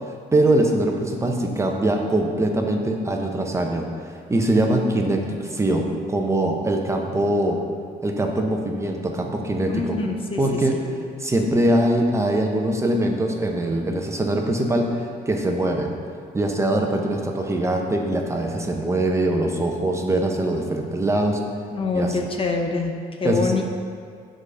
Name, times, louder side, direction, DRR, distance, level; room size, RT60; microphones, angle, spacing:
voice 1, 0.3-7.6 8.0-10.0 10.4-16.0 16.3-21.4 21.9-22.2 23.2-23.5, right 1 dB, 15° right, 1 dB, 0.8 m, -22 dB
voice 2, 9.7-10.4 10.7-10.8 21.7-23.6, left 4 dB, 30° left, 3 dB, 0.9 m, -25 dB
7.4 x 5.0 x 6.5 m, 2.2 s
cardioid pair, 110°, 17 cm